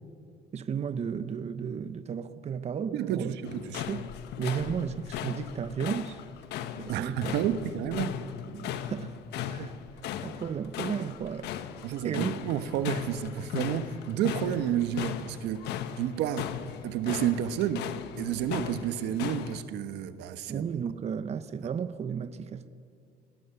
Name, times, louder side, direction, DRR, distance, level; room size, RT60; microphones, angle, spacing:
voice 1, 0.5-3.4 3.9-4.0 4.4-6.2 6.8-7.3 8.5-9.2 9.5-9.7 10.2-11.5 12.0-12.4 20.5-22.7, right 7 dB, 40° right, 1.0 m, -33 dB
voice 2, 2.9-3.9 6.9-8.1 9.5-9.7 11.8-16.5 16.8-17.9 18.2-20.7, right 10 dB, 85° right, 1.3 m, -30 dB
sound 1, 3.4-19.6, left 9 dB, 80° left, 1.2 m, -37 dB
29.0 x 20.0 x 6.9 m
cardioid pair, 110°, 17 cm